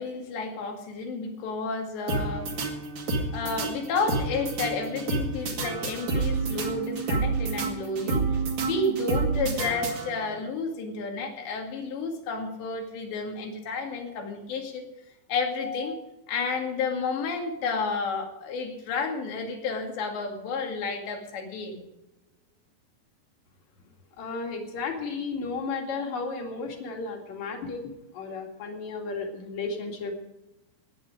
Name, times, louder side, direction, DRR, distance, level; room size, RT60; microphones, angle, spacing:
voice 1, 0.0-2.5 3.3-8.2 8.6-14.9 15.3-21.8, left 4 dB, 80° left, 2 dB, 4.5 m, -31 dB
sound 1, 2.1-10.4, right 3 dB, 50° right, 3.3 m, -29 dB
voice 2, 24.2-27.8 28.1-30.1, left 4 dB, 50° left, 1 dB, 3.2 m, -33 dB
19.0 x 9.9 x 5.0 m, 0.89 s
omnidirectional pair, 5.0 m